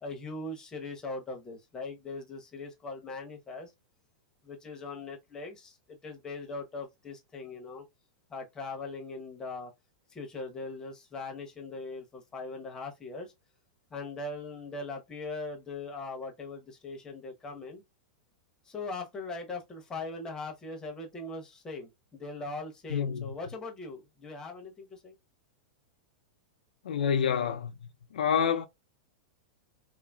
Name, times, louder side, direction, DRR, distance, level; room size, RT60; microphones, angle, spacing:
voice 1, 0.0-3.7 4.4-7.8 8.3-9.7 10.1-13.3 13.9-17.8 18.6-25.1, left 3 dB, 15° left, 0.8 m, -40 dB
voice 2, 22.9-23.3 26.8-27.7 28.1-28.7, left 7 dB, 85° left, 0.4 m, -27 dB
2.8 x 2.5 x 2.2 m
hypercardioid pair, 130°, 4 cm